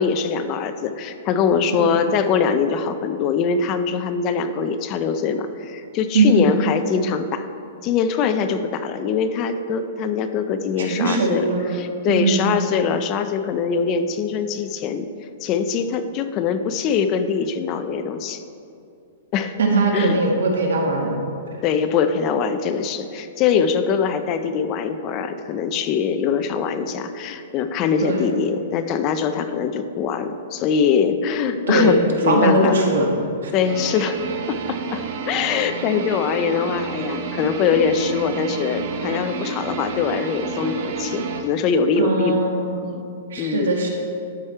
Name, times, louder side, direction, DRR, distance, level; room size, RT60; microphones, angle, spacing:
voice 1, 0.0-7.5 7.8-11.4 11.7-15.1 15.4-18.4 19.3-19.5 19.9-20.2 21.6-32.8 33.5-34.2 34.5-42.4 43.4-43.8, left 6 dB, 25° left, 9 dB, 0.4 m, -22 dB
voice 2, 6.1-6.6 10.8-11.8 12.1-12.5 19.6-21.2 28.0-28.2 31.7-33.1 33.4-33.5 42.0-42.9 43.3-43.9, right 2 dB, 90° right, 1 dB, 1.7 m, -20 dB
sound 1, 33.6-41.4, right 4 dB, 45° right, 0.8 m, -29 dB
12.0 x 4.9 x 4.4 m, 2.5 s
hypercardioid pair, 170°, 0 cm